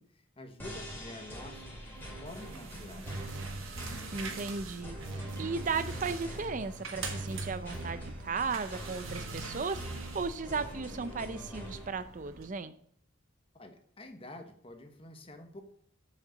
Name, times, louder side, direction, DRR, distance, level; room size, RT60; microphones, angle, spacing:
voice 1, 0.0-3.1 13.5-15.6, left 2 dB, 25° left, 6 dB, 1.1 m, -48 dB
sound 1, 0.6-11.9, equal, 10° left, 2.4 m, -44 dB
sound 2, 2.3-12.5, right 4 dB, 85° right, 1.6 m, -46 dB
sound 3, 3.1-4.3 5.0-6.2 7.0-8.2 9.0-10.2, right 2 dB, 65° right, 1.0 m, -41 dB
voice 2, 4.1-5.0 5.4-12.8, right 4 dB, 40° right, 12 dB, 0.4 m, -35 dB
7.4 x 6.5 x 5.2 m, 0.64 s
head